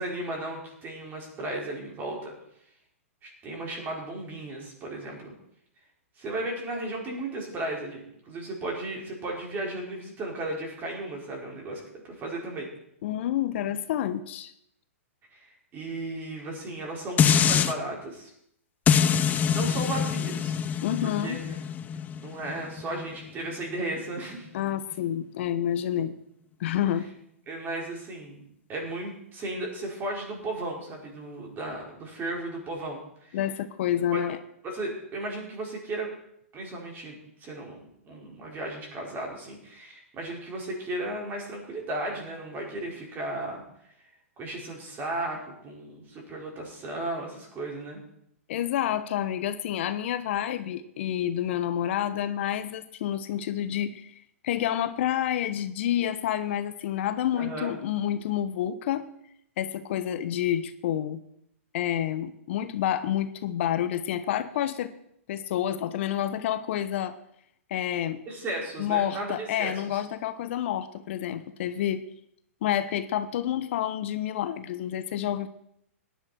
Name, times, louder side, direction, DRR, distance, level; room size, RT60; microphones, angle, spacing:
voice 1, 0.0-2.3 3.2-5.3 6.2-12.7 15.3-15.5 15.7-18.3 19.3-20.5 21.0-21.4 22.2-24.5 27.5-28.4 28.7-33.4 34.1-34.2 34.6-36.1 36.5-43.6 44.4-48.0 57.3-57.8 68.3-70.0, right 2 dB, 25° right, -1 dB, 5.4 m, -35 dB
voice 2, 13.0-14.5 20.8-21.4 24.5-26.2 26.6-27.1 33.3-34.4 48.5-54.1 54.4-59.1 59.6-61.2 61.7-64.9 65.3-67.1 67.7-68.2 68.8-72.0 72.6-75.5, left 11 dB, 55° left, 11 dB, 1.0 m, -29 dB
sound 1, 17.2-17.7 18.9-24.0 24.5-24.6, left 8 dB, 20° left, 0.7 m, -25 dB
17.5 x 10.5 x 4.5 m, 0.72 s
hypercardioid pair, 120°, 8 cm